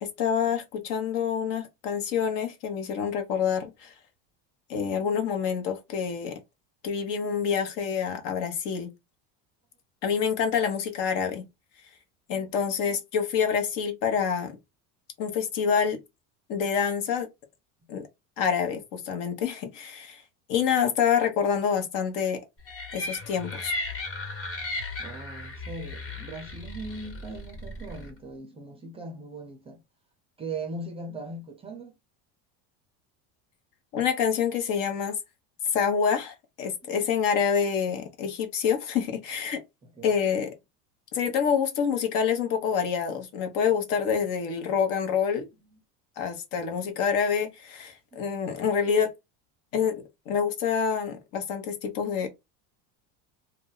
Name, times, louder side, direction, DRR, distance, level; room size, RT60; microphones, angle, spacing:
voice 1, 0.0-3.9 4.7-6.4 6.8-8.9 10.0-11.4 12.3-14.5 15.2-16.0 16.5-17.3 17.9-18.1 18.4-20.2 20.5-22.4 22.9-23.7 33.9-35.1 35.7-39.6 40.0-40.5 41.1-45.5 46.2-49.1 49.7-50.0 50.3-52.3, left 7 dB, 60° left, 1.0 m, -27 dB
sound 1, 22.7-28.1, left 2 dB, 40° left, 1.4 m, -36 dB
voice 2, 25.0-29.8 30.4-32.0 36.9-37.1 40.0-40.1 41.3-41.4 45.7-45.8 48.1-48.2, right 2 dB, 15° right, 0.5 m, -39 dB
2.5 x 2.2 x 3.8 m
cardioid pair, 145°, 36 cm